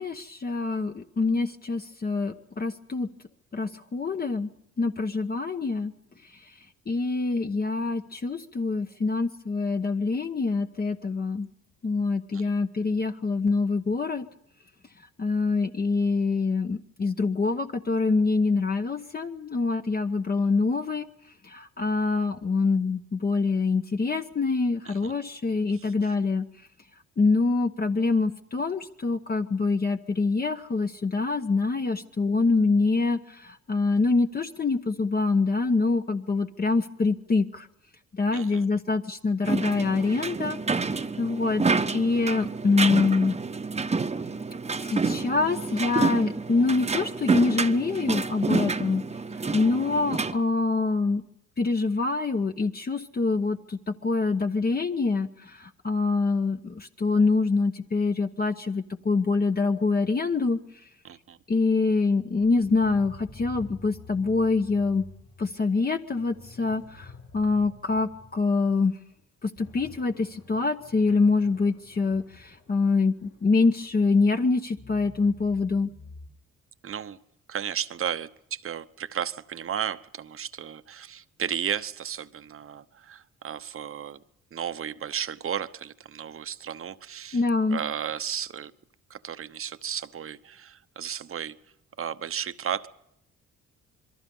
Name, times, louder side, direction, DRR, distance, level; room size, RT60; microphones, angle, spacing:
voice 1, 0.0-3.1 3.5-4.5 4.8-5.9 6.9-11.5 11.8-14.2 15.2-21.1 21.4-26.5 27.2-37.7 38.1-40.6 40.9-41.6 41.9-43.4 44.8-49.0 49.5-51.2 51.6-60.6 61.5-65.0 65.4-68.9 69.4-75.9 87.3-87.8, left 3 dB, 30° left, 1.1 m, -25 dB
voice 2, 25.7-26.1 38.3-38.6 61.0-61.4 76.8-77.2 77.5-84.2 84.5-87.4 87.7-88.7 89.1-91.5 92.0-92.9, right 8 dB, 45° right, 1.0 m, -34 dB
sound 1, 39.4-50.3, right 4 dB, 20° right, 1.0 m, -28 dB
sound 2, 62.4-68.8 69.2-69.3 69.6-74.2 74.7-76.3, left 3 dB, 55° left, 2.9 m, -49 dB
27.0 x 22.5 x 5.5 m
cardioid pair, 90°, 30 cm